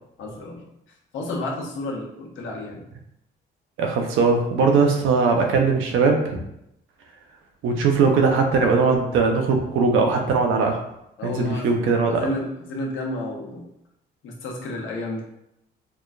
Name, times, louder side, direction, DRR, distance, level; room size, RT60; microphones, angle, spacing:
voice 1, 0.2-0.7 1.1-2.8 11.2-11.8 12.1-13.7 14.2-15.2, left 2 dB, 75° left, -1 dB, 0.9 m, -31 dB
voice 2, 3.8-6.4 7.6-10.8 11.2-12.3, right 4 dB, 80° right, 3 dB, 0.7 m, -20 dB
4.7 x 2.4 x 2.4 m, 0.81 s
cardioid pair, 90°, 20 cm